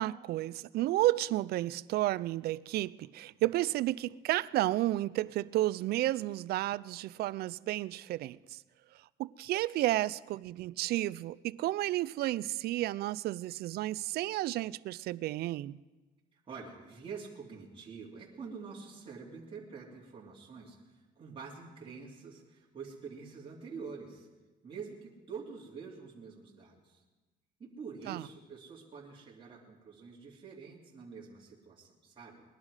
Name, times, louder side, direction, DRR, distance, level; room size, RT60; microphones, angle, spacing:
voice 1, 0.0-8.6 9.2-15.8 28.1-28.2, right 16 dB, 70° right, 0.4 m, -32 dB
voice 2, 16.3-24.3 24.6-27.0 27.6-32.4, right 5 dB, 30° right, 2.8 m, -46 dB
20.5 x 11.0 x 4.9 m
cardioid pair, 110°, 17 cm